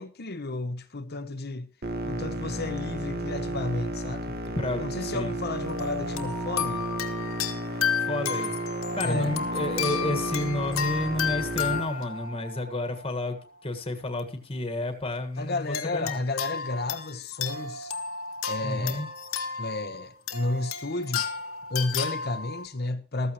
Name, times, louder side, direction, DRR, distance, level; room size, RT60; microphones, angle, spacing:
voice 1, 0.0-1.7 2.0-4.4 4.8-6.9 9.0-9.3 15.4-17.9 18.5-19.1 19.6-21.3 21.7-23.3, left 2 dB, 45° left, 0.9 m, -32 dB
sound 1, 1.8-11.8, right 1 dB, 45° right, 1.2 m, -33 dB
voice 2, 4.6-5.4 8.0-8.5 8.9-13.4 13.6-16.2 18.6-19.1, left 1 dB, 25° left, 1.6 m, -30 dB
sound 2, 5.5-13.3 14.0-14.2 15.7-22.7, left 6 dB, 75° left, 1.6 m, -33 dB
15.0 x 13.5 x 3.0 m
head